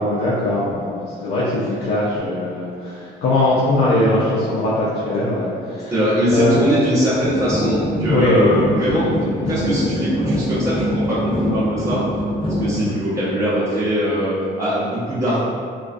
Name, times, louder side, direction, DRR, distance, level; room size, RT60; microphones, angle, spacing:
voice 1, 0.0-5.9 6.3-6.7 8.1-8.8 9.1-10.1 12.7-13.0, left 1 dB, 90° left, -9 dB, 0.5 m, -21 dB
voice 2, 5.9-9.0 9.4-12.0 12.4-15.4, equal, 15° right, -12 dB, 0.9 m, -21 dB
sound 1, 7.2-12.7, equal, 25° left, 1.1 m, -23 dB
2.4 x 2.2 x 2.4 m, 2.2 s
cardioid pair, 90°, 20 cm